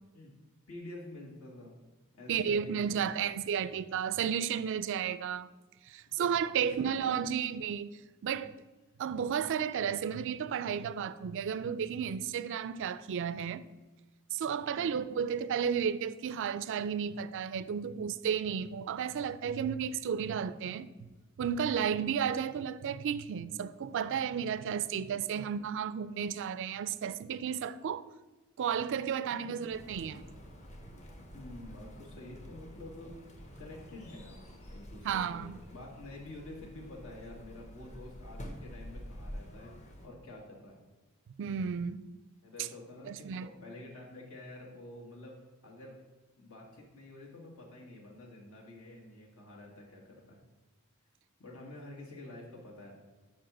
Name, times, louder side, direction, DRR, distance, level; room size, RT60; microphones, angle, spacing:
voice 1, 0.7-1.7 2.1-3.3 6.1-7.5 14.7-15.0 24.9-25.5 29.3-29.7 31.3-33.3 33.6-40.8 42.4-46.0 46.4-50.4 51.4-52.9, left 1 dB, 75° left, 1.9 m, -49 dB
voice 2, 2.3-5.5 5.9-8.6 9.0-13.7 14.3-20.9 21.4-28.0 28.6-30.2 35.0-35.6 41.4-42.0 43.1-43.5, right 7 dB, 60° right, 0.3 m, -33 dB
sound 1, 29.7-40.1, equal, 35° left, 0.9 m, -48 dB
5.3 x 4.9 x 6.0 m
head